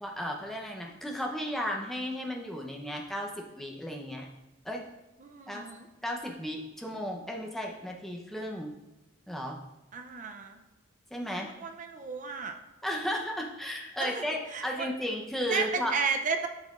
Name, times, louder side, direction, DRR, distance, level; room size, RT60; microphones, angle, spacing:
voice 1, 0.0-4.3 4.6-4.8 5.5-5.6 6.0-8.7 9.3-9.6 11.1-11.5 12.8-15.9, equal, ahead, 0 dB, 0.7 m, -34 dB
voice 2, 5.2-5.9 9.9-10.6 11.3-12.6 14.0-14.2 14.5-14.9 15.5-16.5, right 5 dB, 35° right, 5 dB, 0.5 m, -33 dB
10.5 x 5.7 x 2.4 m, 1.0 s
head